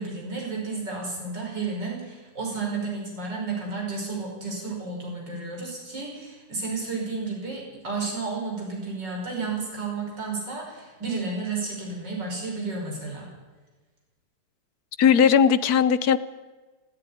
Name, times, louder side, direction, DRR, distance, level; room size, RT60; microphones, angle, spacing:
voice 1, 0.0-13.3, right 4 dB, 60° right, -2 dB, 6.7 m, -32 dB
voice 2, 15.0-16.2, left 7 dB, 60° left, 15 dB, 1.1 m, -18 dB
17.5 x 14.5 x 10.0 m, 1.3 s
omnidirectional pair, 2.1 m